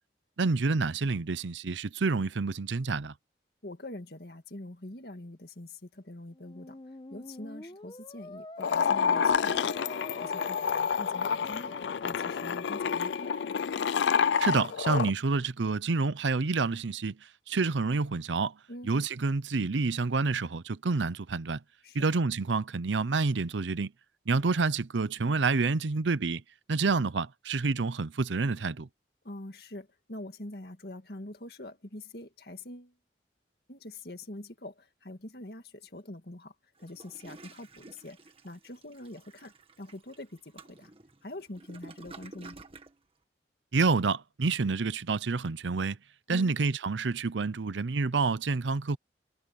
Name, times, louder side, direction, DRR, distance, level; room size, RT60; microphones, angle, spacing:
voice 1, 0.4-3.1 14.4-17.2 17.5-18.5 18.8-21.6 21.9-23.9 24.3-26.4 26.7-28.9 43.7-46.0 46.3-49.0, right 4 dB, 90° right, 0.7 m, -28 dB
voice 2, 3.6-6.8 7.1-9.7 10.2-11.8 12.0-13.3 18.7-18.9 21.8-22.1 29.2-32.9 33.7-36.5 36.8-38.2 38.4-40.9 41.2-42.6 46.3-46.5, left 1 dB, 60° left, 2.1 m, -44 dB
Musical instrument, 6.3-14.4, left 2 dB, 25° left, 1.0 m, -46 dB
sound 1, 8.6-15.1, left 6 dB, 80° left, 0.4 m, -28 dB
Toilet flush, 36.8-43.0, right 3 dB, 30° right, 1.8 m, -51 dB
head